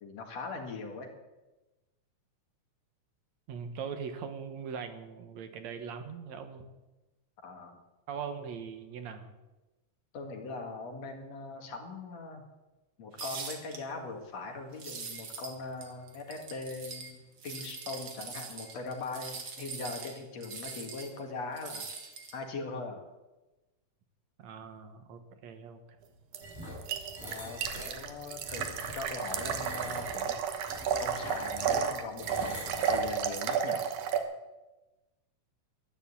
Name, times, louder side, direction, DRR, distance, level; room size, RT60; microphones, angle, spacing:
voice 1, 0.0-1.1 7.4-7.7 10.1-12.4 13.0-21.8 22.3-23.0 27.2-28.7 28.9-30.4 31.0-32.5 32.8-33.8, left 3 dB, 60° left, 3 dB, 3.1 m, -40 dB
voice 2, 3.5-6.7 8.1-9.3 24.4-25.8, right 6 dB, 70° right, 8 dB, 2.4 m, -41 dB
sound 1, 13.2-13.8 14.7-15.5 15.8-17.1 17.4-21.2 21.6-22.4, right 5 dB, 45° right, 2.5 m, -42 dB
sound 2, 26.3-34.2, right 7 dB, 85° right, 2.7 m, -32 dB
sound 3, 26.4-33.4, equal, 15° right, 5.6 m, -44 dB
13.5 x 10.5 x 8.5 m, 1.1 s
omnidirectional pair, 3.4 m